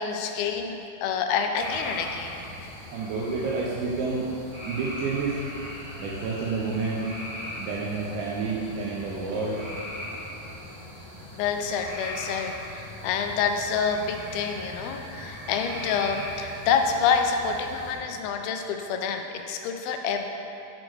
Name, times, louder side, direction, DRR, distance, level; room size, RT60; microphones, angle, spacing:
voice 1, 0.0-2.4 11.3-20.3, left 6 dB, 85° left, 5 dB, 2.4 m, -27 dB
sound 1, 1.5-18.0, left 1 dB, 55° right, 2.5 m, -39 dB
voice 2, 2.9-4.3 4.7-5.4 6.0-7.1 7.5-9.7, right 4 dB, 85° right, -5 dB, 2.4 m, -29 dB
6.3 x 6.3 x 3.0 m, 2.7 s
omnidirectional pair, 4.3 m